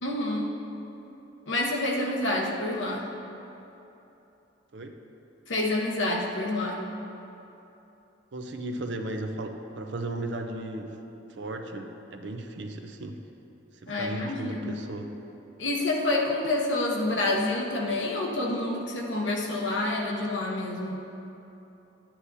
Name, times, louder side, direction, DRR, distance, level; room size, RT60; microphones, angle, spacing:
voice 1, 0.0-0.5 1.5-3.1 5.5-6.8 13.9-14.8 15.6-21.0, left 2 dB, 75° left, 0 dB, 1.1 m, -28 dB
voice 2, 8.3-11.0 11.4-13.2 13.8-15.1, right 2 dB, 65° right, 5 dB, 0.6 m, -35 dB
11.5 x 9.9 x 2.7 m, 3.0 s
head